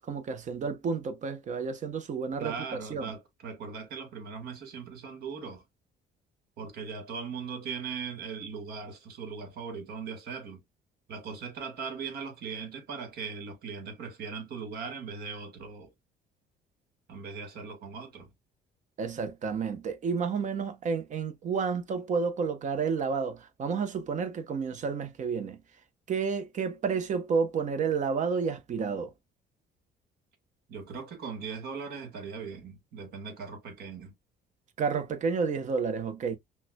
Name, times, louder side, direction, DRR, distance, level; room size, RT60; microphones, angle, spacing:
voice 1, 0.0-3.1 19.0-25.6 26.1-29.1 34.8-36.4, right 5 dB, 45° right, 0.9 m, -30 dB
voice 2, 2.4-5.6 6.6-10.6 11.1-15.9 17.1-18.3 30.7-34.1, right 5 dB, 65° right, 1.8 m, -39 dB
5.7 x 2.3 x 2.2 m
cardioid pair, 110°, 17 cm